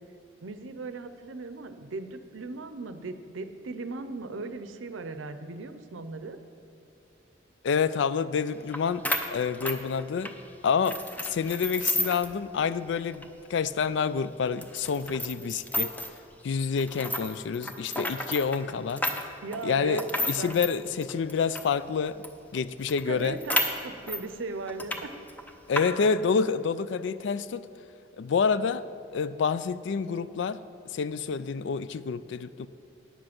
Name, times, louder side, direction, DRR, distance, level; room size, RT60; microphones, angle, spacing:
voice 1, 0.4-6.4 19.4-20.6 23.1-25.1, right 3 dB, 85° right, 10 dB, 0.6 m, -38 dB
voice 2, 7.6-9.1 9.3-10.3 10.6-11.0 11.3-15.9 16.4-19.0 19.6-22.2 22.5-23.4 25.7-27.7 28.2-28.9 29.1-30.6 30.9-32.7, left 5 dB, 65° left, 16 dB, 0.3 m, -28 dB
sound 1, 8.7-8.8 9.0-10.4 10.8-12.3 12.6-12.7 13.1-13.2 13.8-13.9 14.6-16.2 16.8-21.7 22.2-22.3 22.6-22.7 22.9-24.2 24.7-25.0 25.3-25.8, left 1 dB, 10° left, 0.5 m, -31 dB
10.0 x 7.7 x 5.9 m, 2.5 s
head